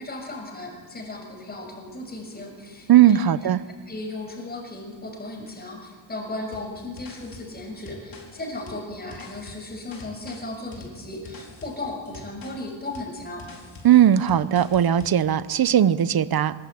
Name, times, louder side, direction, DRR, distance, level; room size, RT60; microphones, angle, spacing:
voice 1, 0.0-3.5 3.9-13.4, left 2 dB, 20° left, 2 dB, 6.4 m, -36 dB
voice 2, 2.9-3.6 13.8-16.5, right 11 dB, 45° right, 15 dB, 0.9 m, -18 dB
sound 1, 6.5-15.2, left 3 dB, 45° left, 4.6 m, -45 dB
24.5 x 22.5 x 8.9 m, 1.3 s
wide cardioid pair, 155°, 49 cm